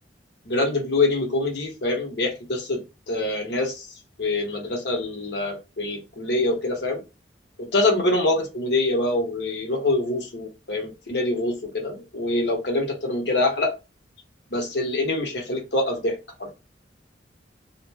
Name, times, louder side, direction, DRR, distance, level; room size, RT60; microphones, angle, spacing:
voice 1, 0.5-3.9 4.2-7.0 7.6-13.7 14.5-16.5, left 2 dB, 75° left, 0.9 m, -25 dB
2.5 x 2.1 x 3.3 m
head